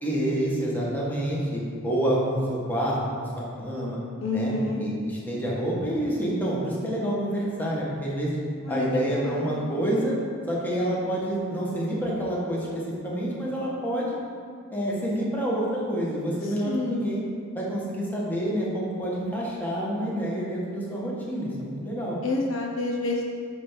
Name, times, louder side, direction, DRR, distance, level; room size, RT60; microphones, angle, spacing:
voice 1, 0.0-4.0 4.3-4.5 4.8-8.4 8.7-10.2 10.5-12.7 13.0-14.2 14.7-17.2 17.5-22.2, right 1 dB, 10° left, -6 dB, 1.5 m, -28 dB
voice 2, 4.2-4.8 8.6-9.7 16.6-17.0 22.2-23.2, left 2 dB, 70° left, -1 dB, 0.9 m, -29 dB
9.1 x 3.5 x 5.7 m, 2.2 s
head